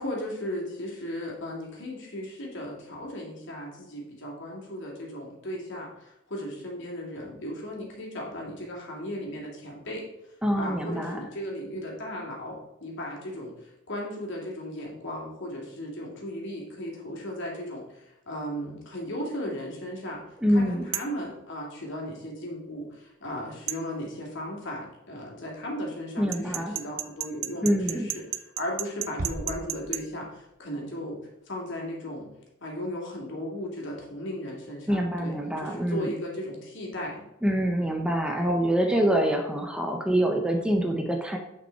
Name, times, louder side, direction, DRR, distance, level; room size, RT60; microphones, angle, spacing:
voice 1, 0.0-10.0 10.6-20.2 20.5-32.3 32.6-37.3, equal, 60° left, -2 dB, 2.7 m, -36 dB
voice 2, 10.4-11.2 20.4-20.9 26.2-26.7 27.6-28.1 34.9-36.1 37.4-41.4, equal, 5° right, 2 dB, 0.7 m, -25 dB
sound 1, 20.9-21.2 23.7-23.8 26.3-30.0, right 13 dB, 70° right, 0.5 m, -33 dB
Bass drum, 29.2-30.6, right 1 dB, 40° right, 0.7 m, -37 dB
9.6 x 5.4 x 4.6 m, 0.89 s
head